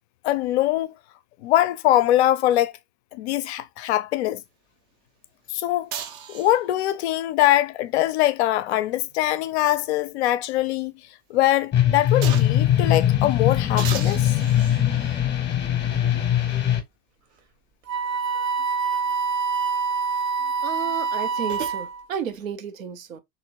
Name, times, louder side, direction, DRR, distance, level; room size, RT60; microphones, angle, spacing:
voice 1, 0.2-0.9 1.4-2.7 3.1-4.4 5.5-5.9 6.3-10.9 11.3-14.3, left 14 dB, 55° left, 0.5 m, -22 dB
sound 1, 5.9-6.9 8.6-10.2 10.6-10.7 12.2-12.7 13.8-15.3 16.2-16.3 20.9-21.8, right 8 dB, 30° right, 0.5 m, -37 dB
sound 2, 11.7-16.8, left 11 dB, 25° left, 0.8 m, -21 dB
Wind instrument woodwind instrument, 17.9-22.0, right 5 dB, 55° right, 1.0 m, -26 dB
voice 2, 20.6-23.2, right 8 dB, 75° right, 0.6 m, -32 dB
2.9 x 2.6 x 2.7 m
figure-of-eight pair, 75°, 41 cm